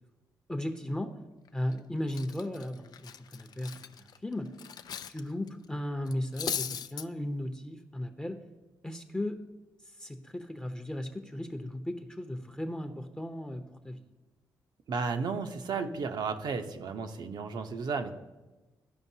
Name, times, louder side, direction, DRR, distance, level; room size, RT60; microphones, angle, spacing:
voice 1, 0.5-1.1 1.5-4.5 5.1-8.4 8.8-9.4 10.0-14.0, left 1 dB, 10° left, 5 dB, 0.7 m, -36 dB
Cutlery silverware, 1.5-1.7 2.1-5.2 5.5-5.6 6.1-7.1, left 8 dB, 60° left, 0.4 m, -38 dB
voice 2, 14.9-18.1, right 5 dB, 65° right, 6 dB, 0.8 m, -33 dB
13.5 x 5.2 x 2.8 m, 1.1 s
cardioid pair, 70°, 8 cm